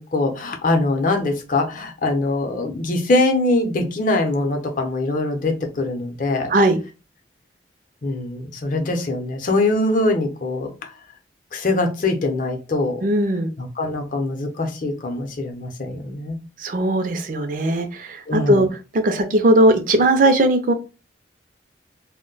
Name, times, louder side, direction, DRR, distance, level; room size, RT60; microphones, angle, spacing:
voice 1, 0.0-6.5 8.0-10.9 11.5-13.0 13.6-16.4 18.3-18.7, left 2 dB, 45° left, 3 dB, 0.6 m, -23 dB
voice 2, 13.0-13.5 16.6-18.7 18.9-20.7, right 1 dB, 45° right, 6 dB, 0.4 m, -18 dB
2.2 x 2.1 x 3.8 m, 0.30 s
head